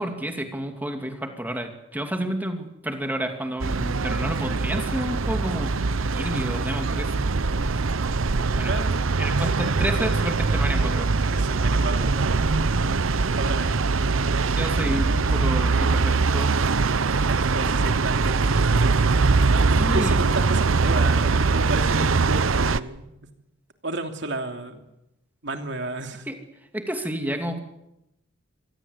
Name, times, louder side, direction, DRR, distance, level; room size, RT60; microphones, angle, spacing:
voice 1, 0.0-5.7 6.1-7.1 8.6-8.7 9.2-11.1 14.4-16.7 19.8-20.2 26.3-26.4 26.7-27.6, right 1 dB, 10° right, 5 dB, 2.6 m, -30 dB
sound 1, 3.6-22.8, right 4 dB, 80° right, 0.8 m, -22 dB
voice 2, 8.7-9.0 9.4-9.6 11.3-12.3 13.4-13.9 17.3-19.2 19.9-23.1 23.8-24.8 25.4-26.3, right 2 dB, 60° right, 5 dB, 3.0 m, -32 dB
25.5 x 19.5 x 8.2 m, 0.88 s
head